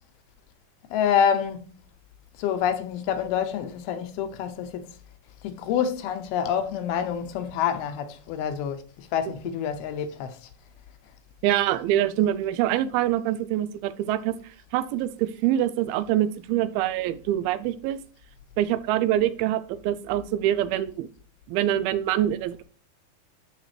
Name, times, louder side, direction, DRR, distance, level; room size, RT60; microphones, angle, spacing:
voice 1, 0.9-1.7 2.4-5.0 5.4-10.4, left 8 dB, 85° left, 2.7 m, -27 dB
voice 2, 11.4-18.0 18.6-21.1 21.5-22.6, right 12 dB, 85° right, 2.4 m, -25 dB
12.5 x 5.0 x 3.2 m
omnidirectional pair, 4.4 m